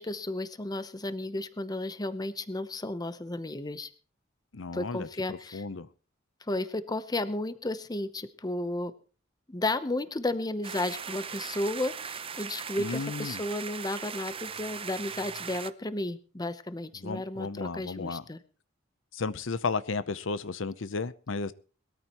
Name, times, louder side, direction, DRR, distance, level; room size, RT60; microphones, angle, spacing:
voice 1, 0.0-3.9 4.7-5.6 6.5-8.9 9.5-18.4, left 2 dB, 20° left, 0.8 m, -33 dB
voice 2, 4.5-5.9 12.8-13.4 17.0-18.2 19.1-21.5, left 4 dB, 75° left, 0.7 m, -34 dB
sound 1, 10.6-15.7, right 6 dB, 30° right, 0.6 m, -39 dB
21.5 x 13.5 x 3.0 m
head